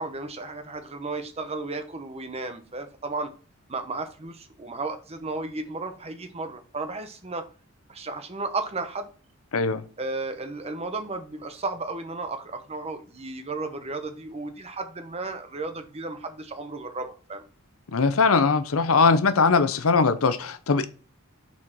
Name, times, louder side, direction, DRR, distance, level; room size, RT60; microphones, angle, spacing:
voice 1, 0.0-3.3 3.7-7.5 7.9-9.1 10.0-17.4, right 3 dB, 30° right, 0.8 m, -34 dB
voice 2, 9.5-9.8 17.9-20.9, left 4 dB, 75° left, 0.7 m, -21 dB
6.2 x 4.3 x 4.5 m
head